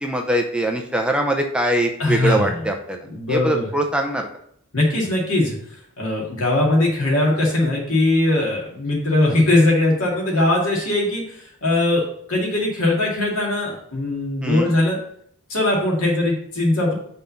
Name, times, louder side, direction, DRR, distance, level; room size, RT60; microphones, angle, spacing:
voice 1, 0.0-3.0 3.3-4.3 14.4-14.7, right 1 dB, 5° right, 3 dB, 0.6 m, -22 dB
voice 2, 2.0-2.6 3.1-3.7 4.7-5.6 6.0-15.0 15.5-16.9, left 2 dB, 70° left, -2 dB, 2.2 m, -20 dB
5.6 x 3.9 x 5.6 m, 0.66 s
head